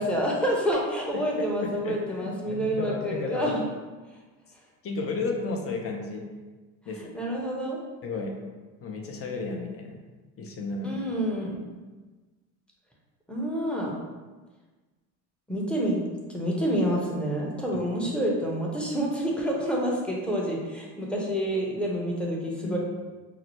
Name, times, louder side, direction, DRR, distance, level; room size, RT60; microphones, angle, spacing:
voice 1, 0.0-3.6 7.1-7.8 10.8-11.5 13.3-13.9 15.5-16.0 16.3-22.8, equal, 5° left, -3 dB, 0.9 m, -28 dB
voice 2, 1.1-3.6 4.8-6.2 6.8-7.1 8.0-8.4 8.8-10.0 10.4-11.1 17.7-18.1 18.8-18.9 22.6-22.8, left 3 dB, 35° left, 1 dB, 0.8 m, -33 dB
5.7 x 2.1 x 3.1 m, 1.3 s
supercardioid pair, 100°, 41 cm